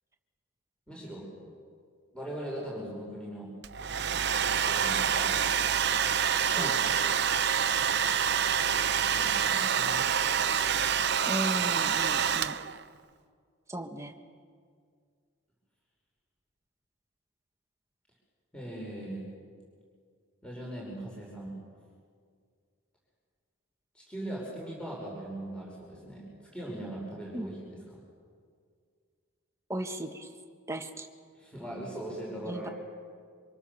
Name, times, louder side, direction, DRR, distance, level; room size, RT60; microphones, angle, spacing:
voice 1, 0.9-1.5 2.1-3.5 4.5-5.4 6.5-6.8 7.0-7.2 9.1-10.1 18.5-19.2 20.4-21.5 23.9-26.3 26.5-28.0 31.3-32.7, right 1 dB, 5° left, -4 dB, 5.5 m, -40 dB
Domestic sounds home sounds, 3.6-12.8, right 8 dB, 50° right, 0.7 m, -27 dB
voice 2, 11.3-12.6 13.7-14.1 27.3-27.5 29.7-30.3 30.7-31.1 32.4-32.7, right 1 dB, 15° right, 5 dB, 1.4 m, -36 dB
28.0 x 26.0 x 7.1 m, 2.1 s
head